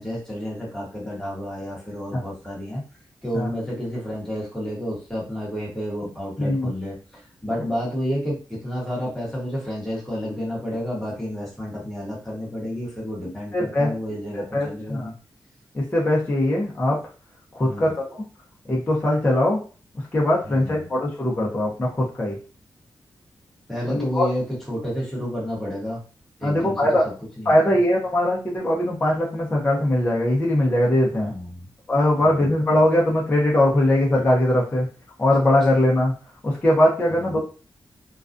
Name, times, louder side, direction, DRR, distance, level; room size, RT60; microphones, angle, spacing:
voice 1, 0.0-2.8 3.2-15.1 17.6-17.9 20.4-20.9 23.7-26.0 26.4-26.9 27.4-27.8 31.1-31.7 32.2-32.5 37.1-37.4, equal, 5° left, -6 dB, 1.0 m, -30 dB
voice 2, 6.4-6.7 13.5-13.9 14.5-15.1 15.7-17.0 17.5-18.2 18.7-19.6 20.1-22.4 23.9-24.3 26.4-27.0 27.5-31.3 31.9-34.9 35.2-36.1 36.4-37.4, left 1 dB, 20° left, -4 dB, 0.6 m, -21 dB
2.3 x 2.2 x 2.5 m, 0.36 s
wide cardioid pair, 140°, 8 cm